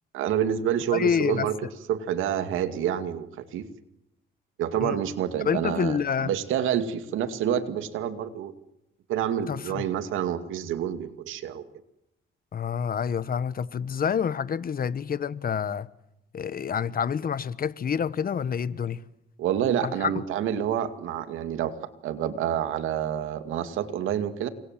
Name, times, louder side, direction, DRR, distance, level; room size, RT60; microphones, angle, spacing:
voice 1, 0.1-1.6 1.9-3.7 4.6-8.5 9.1-11.6 19.4-21.7 22.0-24.5, right 9 dB, 90° right, 2.3 m, -28 dB
voice 2, 0.9-1.5 4.8-5.0 5.4-6.3 9.5-9.8 12.5-15.9 16.3-19.0 19.8-20.2, left 7 dB, 45° left, 1.4 m, -27 dB
29.0 x 25.0 x 7.6 m
cardioid pair, 90°, 20 cm